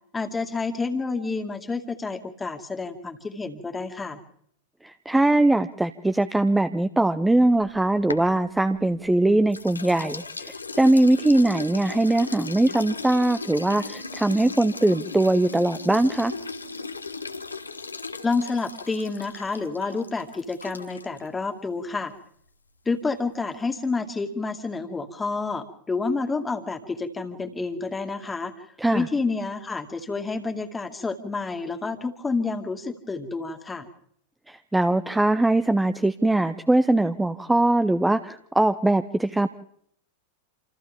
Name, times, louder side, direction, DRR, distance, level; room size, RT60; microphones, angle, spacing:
voice 1, 0.1-4.2 18.2-22.1 22.9-28.7 28.9-33.9, left 4 dB, 15° left, 7 dB, 2.2 m, -29 dB
voice 2, 4.8-16.3 28.8-29.1 34.5-39.5, right 2 dB, 5° right, 12 dB, 0.8 m, -21 dB
sound 1, 7.5-9.1 9.5-21.3, left 4 dB, 80° left, 1.5 m, -37 dB
28.0 x 28.0 x 3.6 m, 0.70 s
figure-of-eight pair, 90°, 0 cm